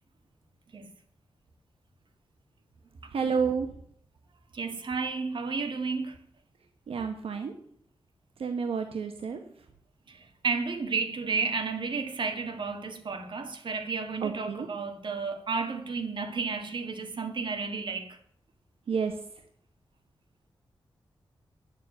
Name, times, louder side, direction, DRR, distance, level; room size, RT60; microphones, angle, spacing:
voice 1, 3.1-3.7 6.9-7.5 8.4-9.4 14.2-14.7 18.9-19.2, right 6 dB, 85° right, 1.1 m, -30 dB
voice 2, 4.5-6.2 10.1-18.2, right 4 dB, 60° right, 1.8 m, -32 dB
9.7 x 7.4 x 7.8 m
wide cardioid pair, 120°, 9 cm